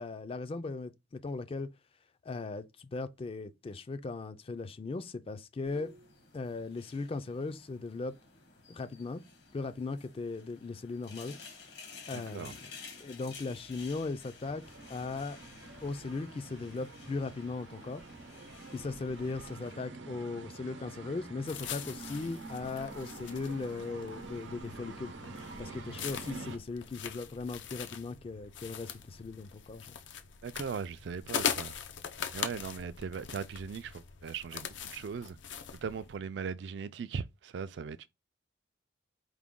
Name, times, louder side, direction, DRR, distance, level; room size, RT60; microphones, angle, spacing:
voice 1, 0.0-1.7 2.2-5.9 6.3-8.1 8.7-9.2 9.5-11.4 12.1-12.6 13.0-14.6 14.9-15.4 15.8-18.0 18.7-25.1 25.6-29.9, left 3 dB, 30° left, 0.3 m, -38 dB
sound 1, 5.7-19.7, left 4 dB, 65° left, 1.2 m, -53 dB
voice 2, 12.1-12.5 30.4-31.8 32.3-35.4 35.7-38.1, right 6 dB, 65° right, 0.3 m, -39 dB
sound 2, 14.4-26.6, right 3 dB, 85° right, 0.7 m, -47 dB
sound 3, 21.5-36.2, left 7 dB, 80° left, 0.5 m, -41 dB
4.7 x 2.2 x 3.6 m
head